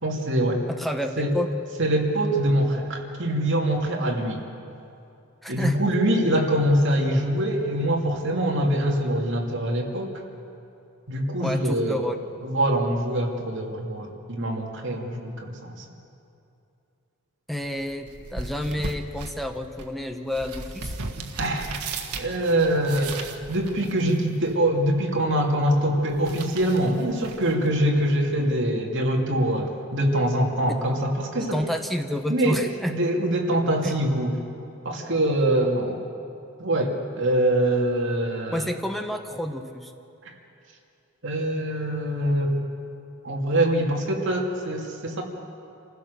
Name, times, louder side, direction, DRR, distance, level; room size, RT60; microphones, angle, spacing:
voice 1, 0.0-0.6 1.2-1.4 1.8-4.4 5.5-10.2 11.1-12.1 12.4-15.8 21.4-21.7 22.1-23.2 23.5-31.6 32.3-32.6 32.9-34.4 34.8-36.0 36.6-38.7 41.2-42.6 43.2-45.2, right 1 dB, 55° right, 0 dB, 2.7 m, -24 dB
voice 2, 0.8-1.5 5.4-5.8 11.4-12.2 17.5-20.9 31.4-32.9 33.8-33.9 38.5-39.9, left 1 dB, ahead, 5 dB, 0.9 m, -29 dB
sound 1, 17.6-28.6, right 3 dB, 90° right, 1.5 m, -38 dB
27.0 x 15.5 x 6.8 m, 2.7 s
head